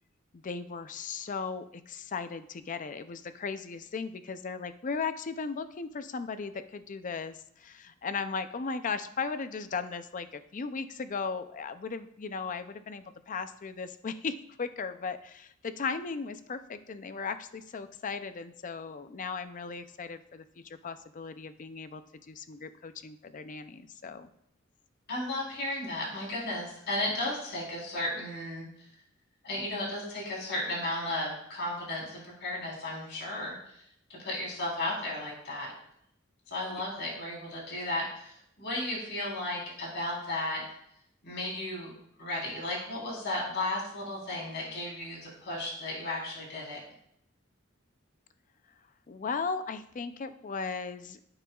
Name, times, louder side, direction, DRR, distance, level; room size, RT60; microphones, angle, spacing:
voice 1, 0.3-24.3 36.7-36.8 49.1-51.2, left 5 dB, 40° left, 11 dB, 0.5 m, -37 dB
voice 2, 25.1-28.6 29.4-33.8 34.1-35.7 36.5-40.6 41.2-41.9 42.2-46.8, left 1 dB, 55° left, -3 dB, 3.8 m, -34 dB
10.5 x 8.8 x 2.4 m, 0.72 s
head